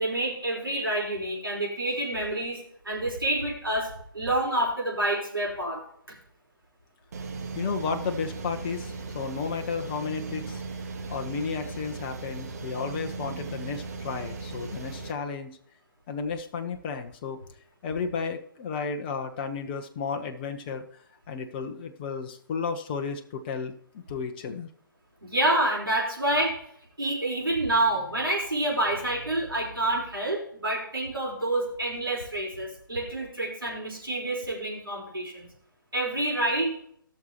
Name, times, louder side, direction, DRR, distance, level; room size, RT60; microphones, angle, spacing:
voice 1, 0.0-5.8 6.1-6.2 25.2-26.6 27.0-35.5 35.9-36.7, right 1 dB, 80° right, -3 dB, 4.6 m, -28 dB
sound 1, 7.1-15.1, right 4 dB, 45° right, 1.3 m, -37 dB
voice 2, 7.6-10.6 11.1-15.5 16.1-17.4 17.8-20.8 21.3-24.7, left 5 dB, 25° left, 5 dB, 0.8 m, -33 dB
17.0 x 6.5 x 3.0 m, 0.65 s
figure-of-eight pair, 135°, 12 cm